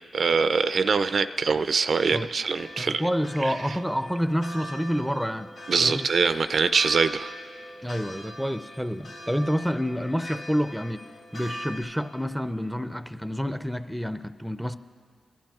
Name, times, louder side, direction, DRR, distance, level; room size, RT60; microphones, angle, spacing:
voice 1, 0.1-3.1 3.4-3.5 5.7-7.3, right 5 dB, 65° right, 11 dB, 0.3 m, -23 dB
sound 1, 2.6-11.8, equal, 75° left, 2.5 m, -42 dB
voice 2, 2.8-6.1 7.8-11.0 11.3-14.8, equal, ahead, 11 dB, 0.5 m, -28 dB
23.0 x 11.5 x 2.4 m, 2.2 s
cardioid pair, 55°, 0 cm